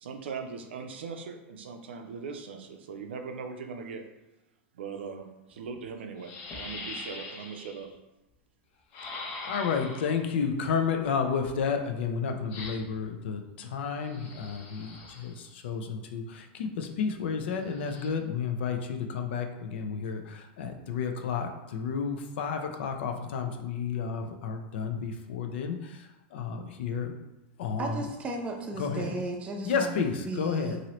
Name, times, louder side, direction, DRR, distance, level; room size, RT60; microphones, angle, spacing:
voice 1, 0.0-4.0 4.7-7.9, right 5 dB, 90° right, 5 dB, 0.5 m, -40 dB
sound 1, 5.5-5.6 6.2-7.9 8.9-10.3 12.5-13.0 14.0-15.5 17.6-18.1, left 3 dB, 50° left, 0.8 m, -42 dB
voice 2, 9.4-27.1 27.6-28.1 28.8-29.1 29.6-30.8, left 6 dB, 75° left, 5 dB, 0.5 m, -31 dB
voice 3, 27.8-30.8, right 2 dB, 20° right, 2 dB, 0.6 m, -35 dB
2.9 x 2.6 x 2.9 m, 0.97 s
supercardioid pair, 125°, 6 cm